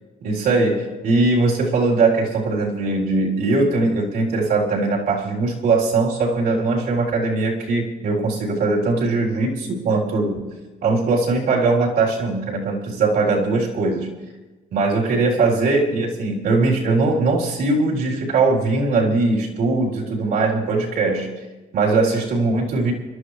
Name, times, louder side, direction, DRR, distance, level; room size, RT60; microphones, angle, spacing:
voice 1, 0.2-10.5 10.8-14.1 14.7-21.3 21.7-22.9, right 3 dB, 65° right, -2 dB, 3.8 m, -20 dB
27.0 x 12.0 x 3.3 m, 1.2 s
cardioid pair, 110°, 17 cm